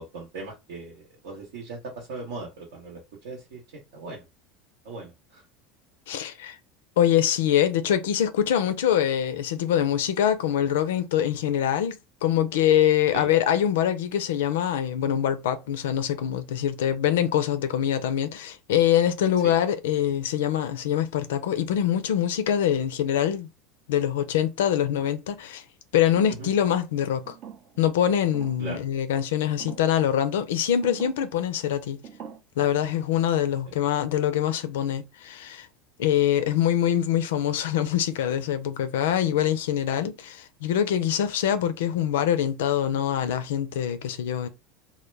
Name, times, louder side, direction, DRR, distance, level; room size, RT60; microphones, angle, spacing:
voice 1, 0.0-4.2 4.8-5.4 13.1-13.3 19.4-19.5 26.4-26.5 28.6-28.8 33.7-33.8, right 3 dB, 85° right, 0.8 m, -39 dB
voice 2, 6.1-6.6 7.0-12.0 12.2-23.5 23.9-25.6 25.9-27.4 27.8-32.0 32.6-35.7 36.0-44.5, left 10 dB, 85° left, 0.4 m, -24 dB
sound 1, 26.1-26.5 27.2-27.9 28.3-28.7 29.6-29.9 30.8-31.3 32.0-32.4, right 8 dB, 55° right, 0.5 m, -43 dB
2.2 x 2.1 x 3.1 m
supercardioid pair, 110°, 0 cm